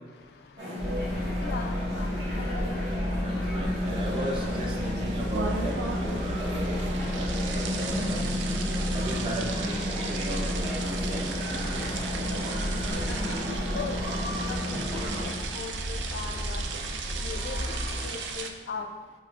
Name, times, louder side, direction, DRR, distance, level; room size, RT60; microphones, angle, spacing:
sound 1, 0.6-15.3, left 1 dB, 65° right, 1.0 m, -32 dB
sound 2, 0.8-18.1, equal, 45° right, 1.4 m, -34 dB
voice 1, 1.4-2.8 12.9-14.0 14.3-16.7 17.2-18.9, left 5 dB, 65° left, 0.3 m, -40 dB
voice 2, 3.2-8.3 8.9-10.6 11.1-11.2 14.7-14.8, right 1 dB, 30° right, 0.5 m, -36 dB
sound 3, 3.9-18.5, right 5 dB, 90° right, 0.3 m, -37 dB
4.6 x 2.8 x 2.4 m
head